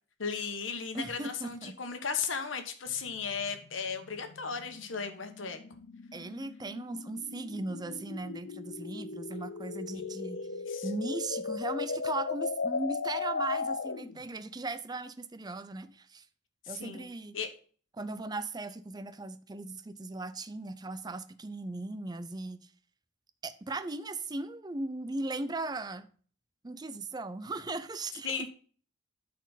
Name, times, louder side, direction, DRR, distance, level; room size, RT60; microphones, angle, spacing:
voice 1, 0.2-5.6 9.9-10.9 16.6-17.1 17.3-17.5 28.2-28.5, left 5 dB, 90° left, 1.3 m, -36 dB
voice 2, 0.9-1.7 6.1-10.5 10.8-16.3 16.7-17.4 18.0-22.7 23.4-26.1 26.6-28.3, right 2 dB, 20° right, 0.5 m, -38 dB
sound 1, 2.9-14.2, left 4 dB, 70° left, 0.5 m, -37 dB
11.5 x 4.3 x 4.0 m
head